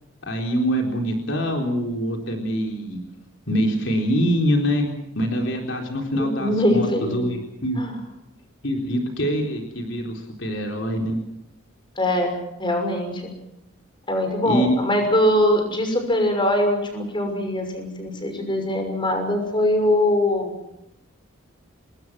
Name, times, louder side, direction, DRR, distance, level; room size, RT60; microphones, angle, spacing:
voice 1, 0.2-3.0 3.5-7.8 8.6-11.2 14.4-14.8, equal, 60° left, 3 dB, 3.9 m, -24 dB
voice 2, 6.2-7.3 7.8-8.0 12.0-12.3 12.6-13.3 14.1-20.5, left 1 dB, 25° left, 5 dB, 6.1 m, -22 dB
27.0 x 21.5 x 6.2 m, 0.85 s
head